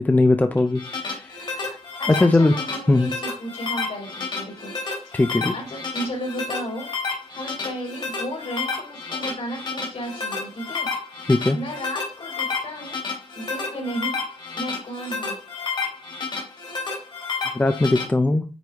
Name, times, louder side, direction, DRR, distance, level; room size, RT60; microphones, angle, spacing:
voice 1, 0.0-1.3 1.6-1.8 2.2-2.5 2.9-3.1 5.1-5.5 11.3-11.6 17.5-18.4, left 2 dB, 15° left, 7 dB, 0.4 m, -19 dB
sound 1, 0.6-18.0, left 4 dB, 45° left, 2.4 m, -30 dB
voice 2, 2.0-5.2 5.5-6.9 7.3-10.9 11.2-13.0 13.3-15.4, equal, 60° left, -1 dB, 3.7 m, -34 dB
9.2 x 4.6 x 3.5 m, 0.35 s
wide cardioid pair, 155°, 12 cm